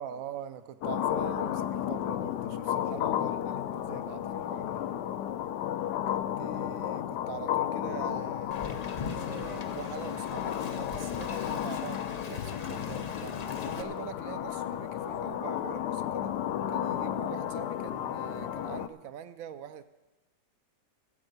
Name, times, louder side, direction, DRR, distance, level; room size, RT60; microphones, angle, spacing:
voice 1, 0.0-4.8 6.1-8.6 9.1-16.3 16.7-19.9, right 9 dB, 70° right, 12 dB, 0.8 m, -43 dB
sound 1, 0.8-18.9, left 11 dB, 75° left, 1.2 m, -33 dB
Wind, 8.5-13.8, left 4 dB, 60° left, 0.4 m, -41 dB
14.0 x 8.0 x 6.6 m, 1.1 s
omnidirectional pair, 1.9 m